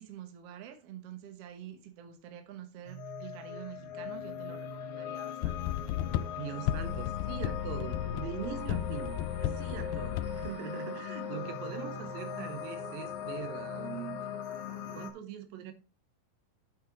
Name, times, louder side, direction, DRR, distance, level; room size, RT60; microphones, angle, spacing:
voice 1, 0.0-5.7, right 10 dB, 60° right, 1.8 m, -47 dB
sound 1, 2.9-15.1, left 7 dB, 55° left, 1.8 m, -40 dB
sound 2, 5.4-10.5, left 12 dB, 85° left, 2.2 m, -34 dB
voice 2, 6.4-14.2 14.9-15.7, right 9 dB, 85° right, 2.9 m, -42 dB
8.1 x 6.6 x 4.0 m
omnidirectional pair, 4.0 m